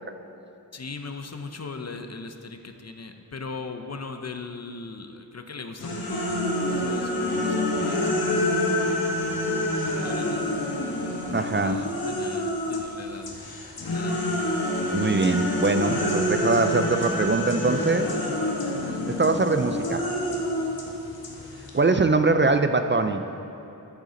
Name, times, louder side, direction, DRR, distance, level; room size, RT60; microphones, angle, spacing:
voice 1, 0.7-6.4 6.7-8.5 10.0-11.0 11.3-13.3 13.9-14.2, left 4 dB, 45° left, 7 dB, 0.6 m, -39 dB
sound 1, 5.8-12.9 13.2-21.8, left 1 dB, 85° left, 1.2 m, -27 dB
voice 2, 11.3-11.9 14.9-18.1 19.1-20.0 21.7-23.2, right 3 dB, 35° right, 8 dB, 0.4 m, -22 dB
10.5 x 8.2 x 3.8 m, 3.0 s
wide cardioid pair, 65°, 36 cm